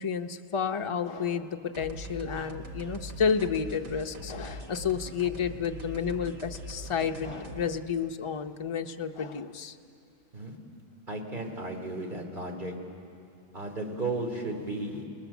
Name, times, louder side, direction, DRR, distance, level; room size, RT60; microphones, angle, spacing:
voice 1, 0.0-9.8, left 6 dB, 30° left, 5 dB, 0.8 m, -31 dB
sound 1, 1.7-7.8, equal, 70° right, 1.5 m, -42 dB
voice 2, 11.1-12.7 13.5-15.1, right 2 dB, 40° right, 2 dB, 3.1 m, -34 dB
29.5 x 20.0 x 7.2 m, 2.6 s
omnidirectional pair, 1.2 m